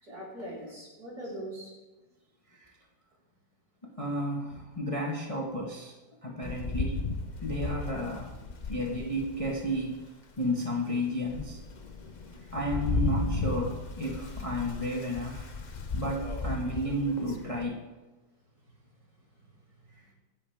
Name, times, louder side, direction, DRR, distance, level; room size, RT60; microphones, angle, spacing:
voice 1, 0.0-1.7 12.2-12.3 16.9-17.0 19.4-19.5, right 1 dB, 55° right, -6 dB, 4.9 m, -41 dB
voice 2, 3.8-5.9 6.2-7.1 7.4-8.3 8.7-10.0 10.4-11.6 12.5-15.5 15.9-17.8, equal, 20° left, -2 dB, 1.3 m, -32 dB
Rain, 6.4-9.9 10.5-10.6 11.1-17.7, left 3 dB, 45° left, 0.6 m, -35 dB
23.5 x 7.8 x 3.5 m, 1.2 s
omnidirectional pair, 1.9 m